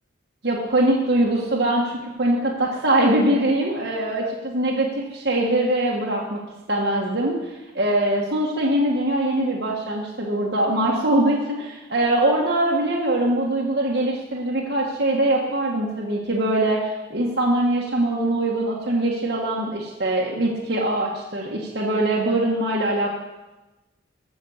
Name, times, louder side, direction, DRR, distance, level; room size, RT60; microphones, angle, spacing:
voice 1, 0.4-6.4 6.7-23.1, right 1 dB, 65° right, -3 dB, 1.5 m, -22 dB
14.5 x 6.3 x 7.1 m, 1.1 s
head